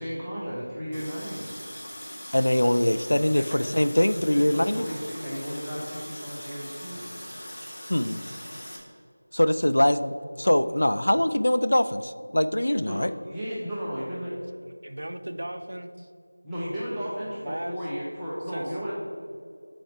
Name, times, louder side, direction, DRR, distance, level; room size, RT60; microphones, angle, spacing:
voice 1, 0.0-1.5 4.3-7.1 12.8-14.4 16.4-18.9, equal, ahead, -14 dB, 0.4 m, -34 dB
Water tap faucet, 0.9-8.8, equal, 30° left, 1.0 m, -41 dB
voice 2, 2.3-4.9 7.9-8.2 9.3-13.1, left 1 dB, 75° left, 12 dB, 0.3 m, -23 dB
voice 3, 14.8-16.1 17.3-17.8 18.5-18.7, right 1 dB, 55° right, 7 dB, 0.5 m, -36 dB
5.7 x 4.2 x 5.7 m, 2.3 s
figure-of-eight pair, 180°, 0 cm